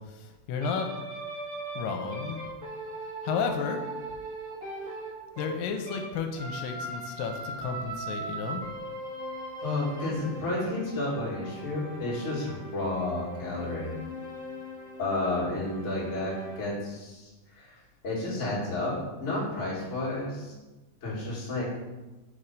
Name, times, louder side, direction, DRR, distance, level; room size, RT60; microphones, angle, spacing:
voice 1, 0.2-0.9 1.8-2.4 3.2-3.8 5.4-8.6, left 5 dB, 85° left, 5 dB, 2.3 m, -32 dB
sound 1, 0.6-6.1 6.4-16.6, right 1 dB, 45° right, 1.8 m, -39 dB
voice 2, 9.6-14.0 15.0-17.8 18.0-20.5 21.0-21.6, left 2 dB, 30° left, -6 dB, 1.4 m, -31 dB
4.7 x 4.3 x 5.1 m, 1.1 s
omnidirectional pair, 4.0 m